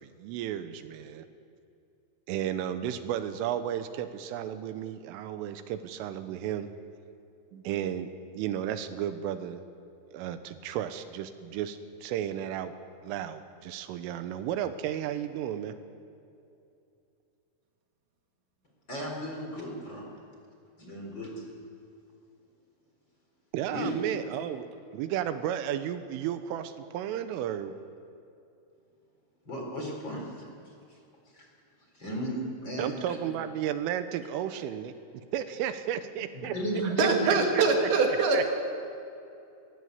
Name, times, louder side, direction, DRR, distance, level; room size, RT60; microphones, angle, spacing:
voice 1, 0.2-1.2 2.3-6.7 7.7-8.1 8.4-9.6 10.1-11.8 12.0-12.7 13.1-15.7 23.5-24.7 24.9-27.7 32.8-34.9 35.3-36.5 37.0-37.6 38.3-38.5, right 10 dB, 90° right, 10 dB, 3.5 m, -33 dB
voice 2, 18.9-20.1 20.8-21.4 23.7-24.0 29.4-30.5 30.9-31.0 31.3-31.5 31.9-33.4 36.3-37.6, equal, 25° left, 0 dB, 4.1 m, -34 dB
voice 3, 36.8-38.5, right 4 dB, 65° right, 2 dB, 4.1 m, -24 dB
21.5 x 21.0 x 8.3 m, 2.6 s
omnidirectional pair, 5.7 m